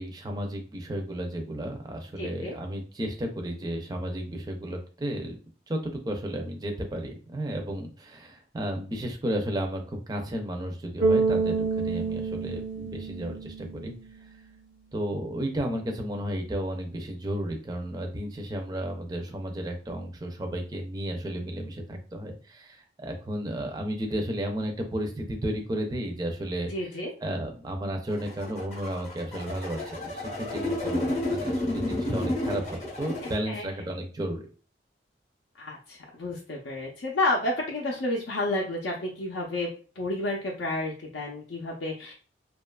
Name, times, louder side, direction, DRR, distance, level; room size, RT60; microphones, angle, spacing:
voice 1, 0.0-5.4 5.7-13.9 14.2-14.3 14.9-34.5, right 1 dB, 20° right, 3 dB, 0.4 m, -33 dB
voice 2, 2.2-2.6 26.7-27.1 33.2-33.6 35.6-39.7 40.0-42.1, left 2 dB, 80° left, -1 dB, 0.5 m, -30 dB
Bass guitar, 11.0-14.1, right 4 dB, 80° right, 0.5 m, -28 dB
sound 1, 28.1-33.4, left 1 dB, 40° left, 0.6 m, -31 dB
2.7 x 2.3 x 2.2 m, 0.38 s
head